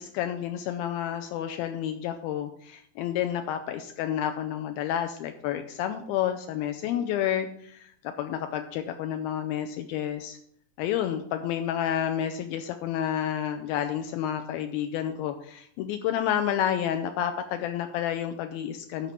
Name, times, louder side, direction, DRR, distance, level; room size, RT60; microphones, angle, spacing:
voice 1, 0.0-10.4 10.8-19.1, left 10 dB, 90° left, 7 dB, 2.1 m, -30 dB
11.0 x 4.4 x 7.0 m, 0.67 s
omnidirectional pair, 4.9 m